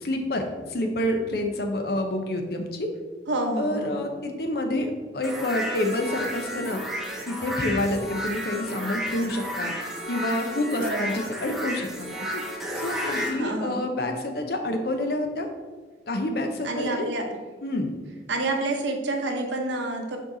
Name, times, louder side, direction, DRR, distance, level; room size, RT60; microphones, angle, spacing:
voice 1, 0.0-2.9 3.6-6.8 7.3-9.7 10.1-12.1 12.3-12.4 12.8-15.5 16.1-17.1 17.6-17.9, left 1 dB, 60° left, 4 dB, 0.8 m, -28 dB
voice 2, 3.3-4.1 10.7-11.2 13.3-13.8 16.6-17.3 18.3-20.2, right 2 dB, 85° right, 3 dB, 1.0 m, -28 dB
sound 1, 5.2-13.3, equal, ahead, 0.8 m, -32 dB
6.3 x 4.6 x 3.9 m, 1.3 s
head